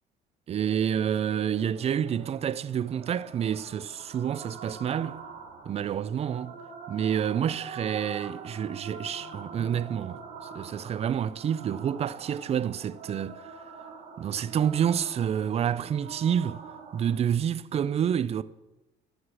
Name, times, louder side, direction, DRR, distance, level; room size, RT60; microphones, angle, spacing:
voice 1, 0.5-5.2 5.7-6.6 6.9-10.2 10.5-13.6 14.2-16.6 16.9-18.4, right 9 dB, 40° right, 0.4 m, -28 dB
sound 1, 0.6-17.1, right 5 dB, 80° right, 2.2 m, -45 dB
14.5 x 6.3 x 4.9 m
cardioid pair, 110°, 17 cm